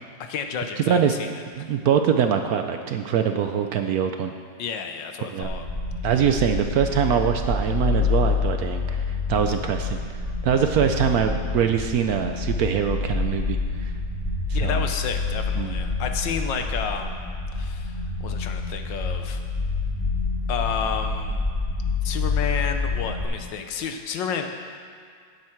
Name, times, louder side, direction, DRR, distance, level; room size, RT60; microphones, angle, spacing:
voice 1, 0.2-1.3 1.6-1.7 4.6-5.7 14.5-19.4 20.5-21.4 22.0-24.5, left 6 dB, 80° left, 6 dB, 1.6 m, -31 dB
voice 2, 0.8-1.1 1.6-4.3 5.3-5.5 6.0-9.0 9.3-10.0 10.4-13.9 14.6-14.8 15.6-15.7, right 8 dB, 70° right, 6 dB, 1.0 m, -23 dB
sound 1, 5.4-23.2, left 4 dB, 10° left, 2.6 m, -27 dB
16.0 x 8.3 x 4.5 m, 2.1 s
omnidirectional pair, 2.0 m